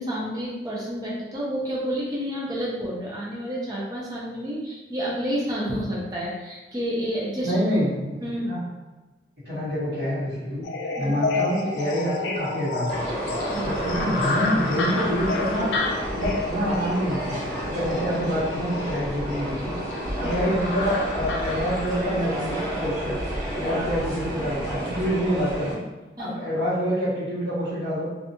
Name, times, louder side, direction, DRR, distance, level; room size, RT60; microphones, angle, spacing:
voice 1, 0.0-7.5 8.2-8.5 11.0-11.1 13.5-13.7 20.2-20.3 23.6-23.7 26.2-26.3, equal, 20° right, -6 dB, 0.5 m, -30 dB
voice 2, 7.4-8.2 8.4-8.6 9.4-13.1 13.6-15.7 16.1-19.7 20.1-23.2 23.5-25.8 26.2-28.1, equal, 75° right, -17 dB, 1.3 m, -27 dB
sound 1, 10.6-22.1, left 3 dB, 85° left, 0.4 m, -31 dB
sound 2, 12.9-25.7, equal, 45° right, 1.3 m, -30 dB
2.6 x 2.2 x 2.6 m, 1.2 s
head